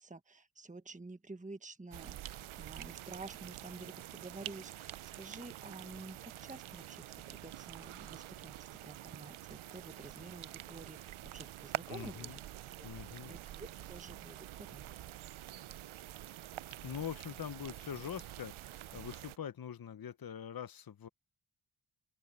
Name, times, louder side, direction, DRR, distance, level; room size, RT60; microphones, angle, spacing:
voice 1, 0.0-15.1, right 3 dB, 15° right, 1.3 m, -50 dB
sound 1, 1.9-19.4, right 14 dB, 85° right, 0.6 m, -47 dB
voice 2, 11.9-12.4 12.8-13.3 16.8-21.1, left 8 dB, 45° left, 0.8 m, -43 dB
open air
cardioid pair, 55°, 48 cm